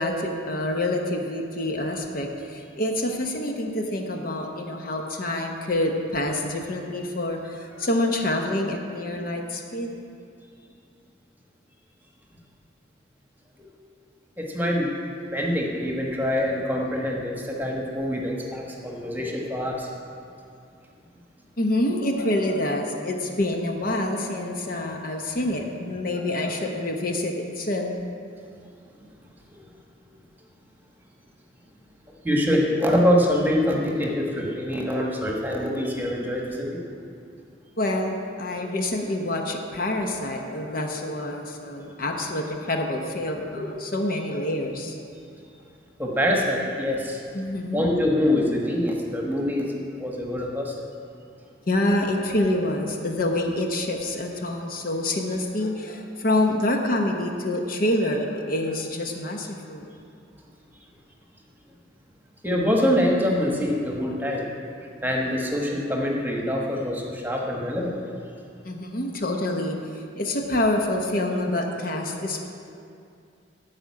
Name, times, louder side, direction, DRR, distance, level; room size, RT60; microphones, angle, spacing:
voice 1, 0.0-9.9 21.6-28.0 37.8-45.0 47.3-47.9 51.7-59.8 68.6-72.5, left 1 dB, 50° left, 2 dB, 0.9 m, -27 dB
voice 2, 14.4-14.9 15.3-19.9 29.5-29.6 32.2-36.8 41.8-41.9 43.5-43.6 46.0-47.2 47.7-49.7 50.0-50.7 62.4-64.5 65.0-68.0, equal, 10° right, -1 dB, 1.2 m, -25 dB
12.0 x 5.1 x 8.4 m, 2.4 s
head